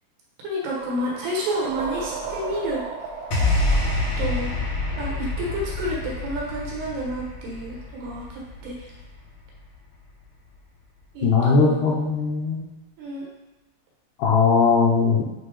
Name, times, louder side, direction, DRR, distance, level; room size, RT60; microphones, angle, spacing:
voice 1, 0.4-2.8 4.2-4.5 5.0-8.9 11.1-11.8 13.0-13.3, equal, 70° right, -4 dB, 3.1 m, -30 dB
sound 1, 0.7-5.7, right 4 dB, 85° right, 3.3 m, -36 dB
sound 2, 3.3-9.7, left 2 dB, 55° left, 2.5 m, -27 dB
voice 2, 11.2-12.6 14.2-15.2, left 4 dB, 75° left, -4 dB, 1.9 m, -19 dB
7.9 x 3.0 x 4.9 m, 1.0 s
omnidirectional pair, 5.1 m